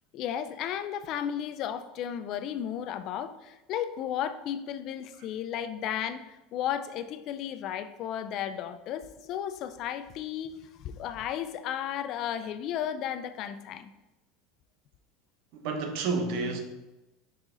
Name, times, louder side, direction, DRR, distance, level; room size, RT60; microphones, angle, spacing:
voice 1, 0.1-6.2 6.5-13.9, left 9 dB, 40° left, 0.3 m, -34 dB
voice 2, 15.5-16.6, right 3 dB, 60° right, 0.9 m, -30 dB
5.7 x 4.8 x 3.8 m
cardioid pair, 165°, 0 cm